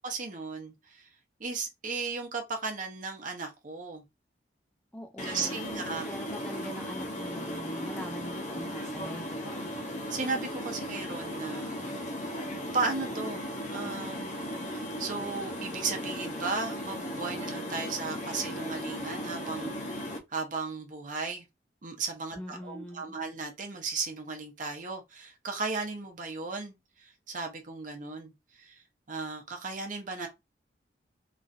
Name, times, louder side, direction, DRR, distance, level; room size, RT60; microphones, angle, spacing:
voice 1, 0.0-1.1 1.4-4.0 5.2-6.1 10.1-11.8 12.4-12.5 12.7-21.4 21.8-26.7 27.0-28.3 28.6-28.8 29.1-30.3, right 4 dB, 45° right, 0.8 m, -35 dB
voice 2, 4.9-9.7 22.4-23.1, equal, 5° left, 0.4 m, -43 dB
sound 1, 5.2-20.2, equal, 45° left, 0.7 m, -36 dB
3.0 x 2.5 x 2.6 m
head